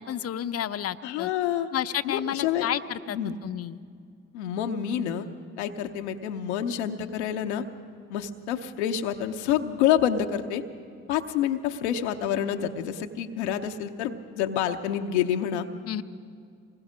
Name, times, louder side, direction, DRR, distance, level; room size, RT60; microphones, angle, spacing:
voice 1, 0.0-1.3 1.7-3.8 15.9-16.0, left 10 dB, 45° left, 10 dB, 0.7 m, -31 dB
voice 2, 1.0-1.7 2.0-2.7 3.1-3.4 4.3-5.3 5.6-7.6 8.1-10.6 11.1-15.7, left 9 dB, 90° left, 5 dB, 0.8 m, -28 dB
25.0 x 20.5 x 5.0 m, 2.2 s
hypercardioid pair, 45°, 33 cm